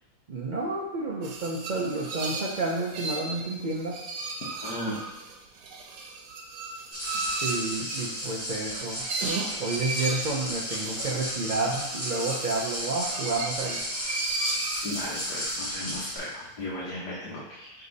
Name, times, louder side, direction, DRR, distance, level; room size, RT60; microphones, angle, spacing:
voice 1, 0.3-4.0 7.3-9.0 9.6-13.8, right 3 dB, 65° right, -4 dB, 0.4 m, -30 dB
sound 1, 1.2-15.7, right 3 dB, 90° right, 1.4 m, -35 dB
voice 2, 4.6-5.0 14.8-17.7, left 1 dB, 70° left, -7 dB, 1.7 m, -35 dB
sound 2, 6.9-16.2, equal, 35° left, 2.3 m, -34 dB
6.7 x 3.5 x 4.1 m, 0.97 s
omnidirectional pair, 1.8 m